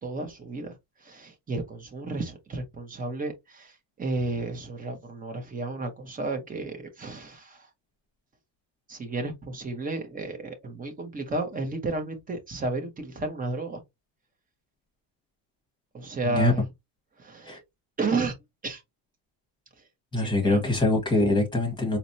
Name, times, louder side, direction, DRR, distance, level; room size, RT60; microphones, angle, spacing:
voice 1, 0.0-7.7 8.9-13.8 15.9-16.7 17.2-17.6 18.0-18.3 18.6-18.8 19.8-19.9 20.2-20.7, right 3 dB, 20° right, 0.7 m, -32 dB
voice 2, 20.1-22.0, left 2 dB, 10° left, 1.2 m, -23 dB
4.2 x 2.1 x 2.6 m
cardioid pair, 160°, 47 cm